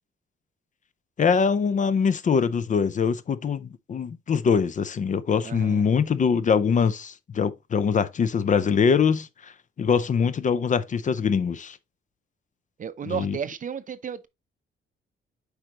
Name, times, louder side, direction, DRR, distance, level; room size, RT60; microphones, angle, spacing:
voice 1, 1.2-9.5 9.8-11.8 13.1-13.4, left 6 dB, 35° left, 0.5 m, -23 dB
voice 2, 5.4-5.9 12.8-14.3, right 7 dB, 40° right, 0.6 m, -33 dB
8.1 x 5.1 x 2.9 m
cardioid pair, 130°, 21 cm